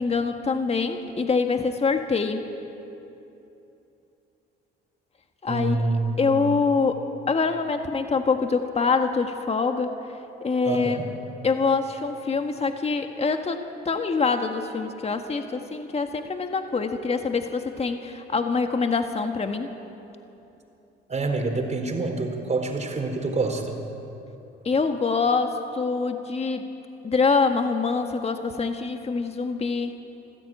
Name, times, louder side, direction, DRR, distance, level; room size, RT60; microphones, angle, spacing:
voice 1, 0.0-2.4 5.4-5.8 6.2-9.9 10.4-11.0 11.4-19.7 24.7-26.6 27.0-30.0, left 4 dB, 30° left, 6 dB, 1.7 m, -25 dB
voice 2, 5.5-6.3 10.6-11.1 21.1-23.8, right 3 dB, 35° right, 4 dB, 4.2 m, -27 dB
25.0 x 14.5 x 8.9 m, 2.9 s
supercardioid pair, 70°, 20 cm